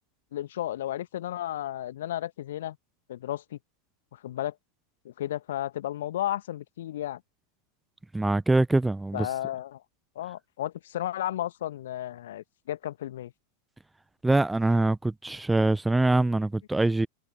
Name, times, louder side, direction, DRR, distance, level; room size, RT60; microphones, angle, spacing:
voice 1, 0.3-2.8 3.1-3.6 4.1-4.5 5.0-7.2 9.1-9.8 10.1-13.3, left 12 dB, 60° left, 1.5 m, -33 dB
voice 2, 8.1-9.3 14.2-17.1, right 2 dB, 5° right, 1.0 m, -24 dB
figure-of-eight pair, 90°, 0 cm